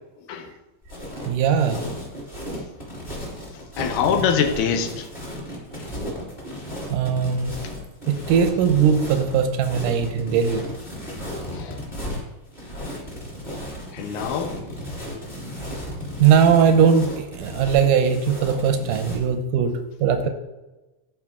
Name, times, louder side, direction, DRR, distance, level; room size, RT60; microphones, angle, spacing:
sound 1, 0.8-19.3, equal, 15° left, 2.0 m, -34 dB
voice 1, 1.3-1.8 6.9-7.5 8.1-10.6 16.2-20.3, right 7 dB, 85° right, 7 dB, 2.3 m, -19 dB
voice 2, 3.8-5.1 11.5-11.8 13.9-14.6, left 7 dB, 80° left, 7 dB, 2.2 m, -24 dB
12.0 x 4.9 x 3.7 m, 1.0 s
omnidirectional pair, 3.6 m